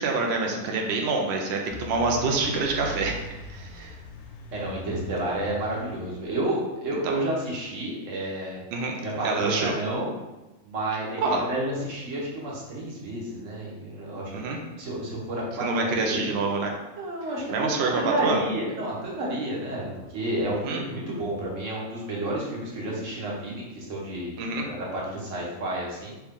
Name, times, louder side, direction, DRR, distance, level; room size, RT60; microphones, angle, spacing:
voice 1, 0.0-4.0 7.0-7.2 8.7-9.0 9.2-9.7 11.2-11.4 14.3-14.6 15.6-16.7 17.5-18.4 20.6-20.8 24.4-24.7, right 3 dB, 75° right, 1 dB, 0.6 m, -26 dB
sound 1, 1.7-6.3, left 1 dB, 75° left, 1.0 m, -40 dB
voice 2, 4.5-8.6 9.0-10.1 10.6-11.2 11.5-14.5 14.8-16.2 17.0-26.1, right 1 dB, 50° right, -4 dB, 1.3 m, -31 dB
4.6 x 2.7 x 3.6 m, 1.1 s
omnidirectional pair, 1.7 m